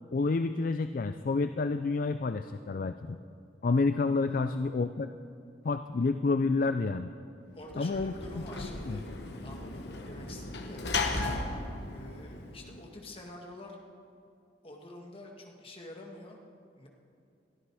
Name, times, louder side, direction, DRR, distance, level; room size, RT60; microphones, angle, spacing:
voice 1, 0.1-3.2 3.6-5.1 5.6-7.1 7.8-8.1 8.6-9.0, left 3 dB, 50° left, 10 dB, 0.4 m, -29 dB
voice 2, 7.5-9.1 9.4-11.5 11.8-13.8 14.6-16.4 16.7-16.9, left 1 dB, 30° left, 1 dB, 1.9 m, -47 dB
Sliding door / Slam, 7.6-13.0, left 3 dB, 70° left, 1.4 m, -36 dB
22.0 x 13.0 x 4.9 m, 2.4 s
head